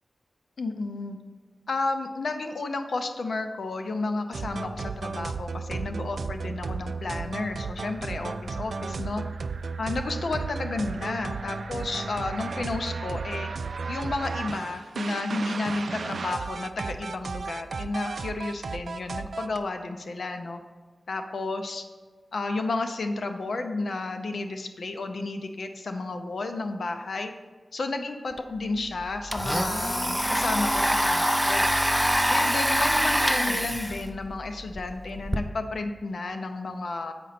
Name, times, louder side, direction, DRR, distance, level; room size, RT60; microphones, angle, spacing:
voice 1, 0.6-1.2 1.7-9.2 9.8-13.5 13.9-20.6 21.1-21.8 22.3-27.3 27.7-31.6 32.3-37.1, left 3 dB, 80° left, 6 dB, 0.5 m, -32 dB
sound 1, 4.3-19.6, right 4 dB, 80° right, 0.3 m, -34 dB
Domestic sounds home sounds, 28.4-28.5 28.8-35.4, equal, ahead, 0.4 m, -25 dB
8.0 x 5.1 x 4.2 m, 1.4 s
wide cardioid pair, 90°, 0 cm